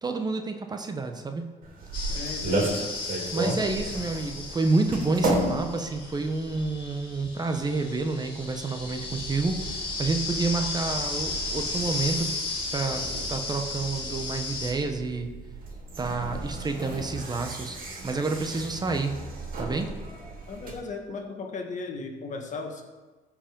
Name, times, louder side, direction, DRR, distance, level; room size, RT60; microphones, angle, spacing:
voice 1, 0.0-1.5 3.3-12.3 12.7-13.0 13.3-15.3 16.0-17.8 18.0-19.2 19.6-19.9, right 3 dB, 25° right, 5 dB, 0.9 m, -29 dB
sound 1, 1.6-20.7, right 2 dB, 55° right, 2.6 m, -35 dB
sound 2, 1.9-14.7, left 3 dB, 30° left, 3.0 m, -34 dB
voice 2, 2.1-2.8 20.5-22.8, left 3 dB, 45° left, 3 dB, 1.5 m, -36 dB
14.5 x 5.0 x 5.2 m, 1.3 s
cardioid pair, 110°, 17 cm